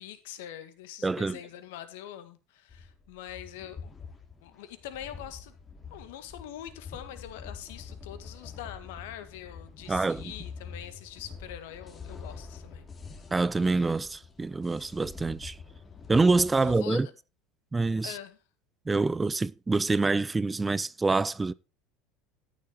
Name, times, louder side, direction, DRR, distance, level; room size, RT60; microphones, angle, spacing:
voice 1, 0.0-3.9 4.4-5.5 5.9-12.8 16.6-17.0 18.0-18.4, left 11 dB, 70° left, 2.0 m, -43 dB
voice 2, 1.0-1.4 9.9-10.3 13.3-15.6 16.1-17.1 17.7-18.2 18.9-21.5, right 3 dB, 15° right, 0.6 m, -26 dB
sound 1, 2.7-16.8, left 5 dB, 30° left, 3.6 m, -45 dB
13.5 x 10.0 x 3.0 m
hypercardioid pair, 75°, 0 cm